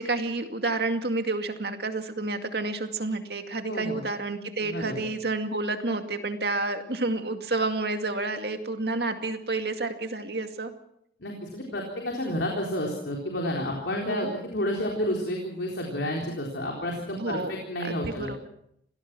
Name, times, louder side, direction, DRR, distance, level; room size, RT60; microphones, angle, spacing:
voice 1, 0.0-10.7 14.1-14.3 17.2-17.5 17.8-18.5, right 3 dB, 65° right, 6 dB, 2.3 m, -30 dB
voice 2, 3.6-4.0 4.6-5.1 11.2-18.5, left 1 dB, 80° left, 0 dB, 4.0 m, -31 dB
26.5 x 17.5 x 6.2 m, 0.70 s
head